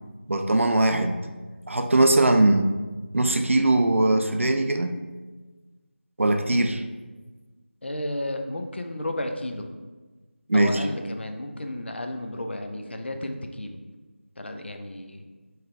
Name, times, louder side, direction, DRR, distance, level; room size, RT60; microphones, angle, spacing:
voice 1, 0.3-1.2 1.7-2.7 3.1-4.9 6.2-6.8 10.5-10.8, right 2 dB, 85° right, 7 dB, 0.5 m, -21 dB
voice 2, 7.8-9.7 10.5-13.8 14.4-15.3, left 1 dB, 60° left, 5 dB, 0.5 m, -33 dB
4.8 x 3.0 x 3.3 m, 1.3 s
figure-of-eight pair, 175°, 7 cm